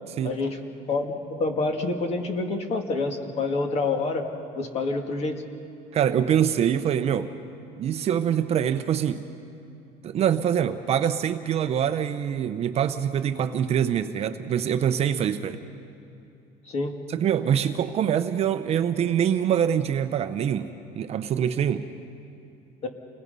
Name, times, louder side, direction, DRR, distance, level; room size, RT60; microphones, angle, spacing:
voice 1, 0.2-0.6 0.9-4.3 4.6-5.4 16.7-17.0 22.8-22.9, left 3 dB, 40° left, 4 dB, 2.1 m, -27 dB
voice 2, 5.9-7.3 7.8-9.2 10.0-15.6 17.1-21.9, right 9 dB, 35° right, 9 dB, 0.8 m, -24 dB
29.5 x 20.5 x 5.5 m, 2.8 s
cardioid pair, 150°, 17 cm